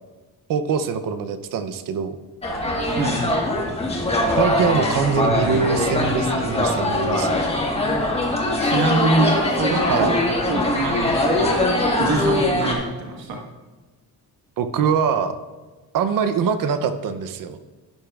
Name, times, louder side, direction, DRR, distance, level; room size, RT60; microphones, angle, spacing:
voice 1, 0.5-2.2 4.4-7.4 9.9-10.1 14.6-15.4 15.9-17.6, right 6 dB, 70° right, 10 dB, 0.7 m, -23 dB
sound 1, 2.4-12.7, left 1 dB, 15° left, 1.4 m, -22 dB
voice 2, 8.6-13.4, right 2 dB, 85° right, 0 dB, 1.5 m, -24 dB
12.0 x 10.0 x 2.4 m, 1.2 s
cardioid pair, 160°, 35 cm